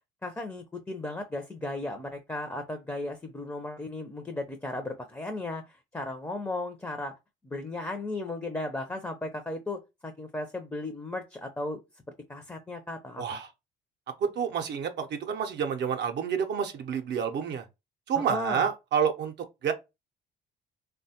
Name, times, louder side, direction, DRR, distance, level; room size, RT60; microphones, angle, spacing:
voice 1, 0.2-7.1 7.4-11.8 12.3-13.4 18.1-18.7, left 2 dB, 10° left, 0.5 m, -35 dB
voice 2, 13.2-13.5 14.2-17.6 18.1-19.3 19.6-19.7, right 7 dB, 55° right, 0.5 m, -29 dB
3.1 x 2.2 x 2.7 m
supercardioid pair, 80°, 21 cm